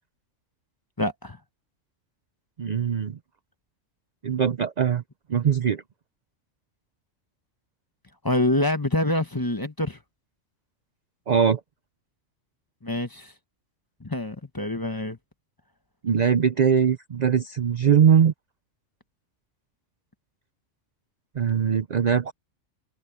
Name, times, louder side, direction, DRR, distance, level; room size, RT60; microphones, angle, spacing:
voice 1, 1.0-1.4 8.2-10.0 12.8-13.3 14.0-15.2, left 1 dB, 20° left, 1.0 m, -26 dB
voice 2, 2.6-3.2 4.2-5.0 5.3-5.8 11.3-11.6 16.0-18.3 21.4-22.3, right 7 dB, 50° right, 0.5 m, -21 dB
omnidirectional pair, 1.3 m